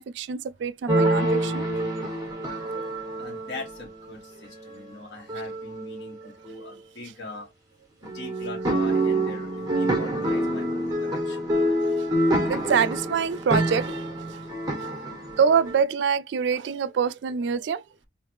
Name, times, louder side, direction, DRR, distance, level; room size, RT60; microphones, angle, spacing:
voice 1, 0.0-1.7 2.5-3.1 12.1-14.2 15.4-17.8, right 6 dB, 75° right, 0.3 m, -26 dB
sound 1, 0.9-4.1 4.5-4.9 5.3-6.2 6.5-6.6 8.0-15.8, right 1 dB, 20° right, 1.5 m, -27 dB
voice 2, 3.2-7.5 8.0-11.5, left 2 dB, 70° left, 2.1 m, -41 dB
3.8 x 3.4 x 3.1 m
head